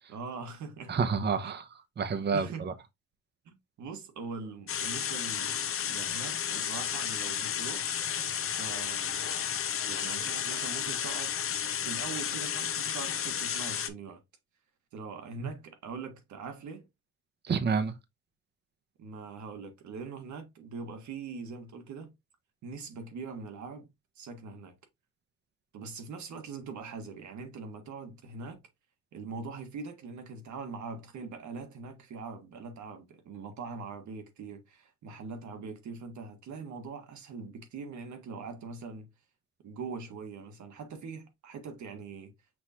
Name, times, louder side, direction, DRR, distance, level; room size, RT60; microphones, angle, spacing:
voice 1, 0.1-1.0 1.4-1.5 2.3-2.6 3.4-7.9 8.5-9.5 9.9-11.3 11.8-14.2 14.9-16.9 19.0-22.1 22.6-23.9 24.2-24.7 25.7-28.6 29.1-39.1 39.6-42.3, right 4 dB, 70° right, 1.5 m, -42 dB
voice 2, 0.9-1.7 2.0-2.7 17.4-18.0, right 5 dB, 35° right, 0.8 m, -29 dB
sound 1, 4.7-13.9, left 9 dB, 45° left, 0.7 m, -32 dB
6.1 x 3.0 x 2.8 m
cardioid pair, 90°, 30 cm